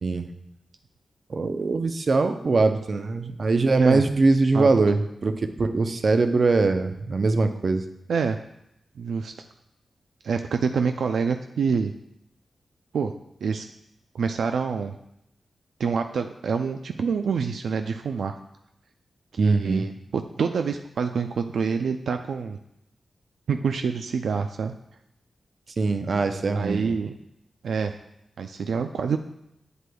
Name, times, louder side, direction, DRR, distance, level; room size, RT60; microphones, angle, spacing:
voice 1, 1.3-7.8 19.4-19.9 25.8-27.0, right 3 dB, 55° right, 8 dB, 0.6 m, -22 dB
voice 2, 9.0-9.3 10.2-11.9 12.9-13.1 13.4-13.6 14.1-14.9 15.8-18.4 19.3-22.6 23.5-24.7 26.5-27.1 27.6-28.0 28.4-29.2, right 5 dB, 90° right, 6 dB, 0.3 m, -26 dB
8.0 x 7.8 x 2.3 m, 0.79 s
cardioid pair, 70°, 0 cm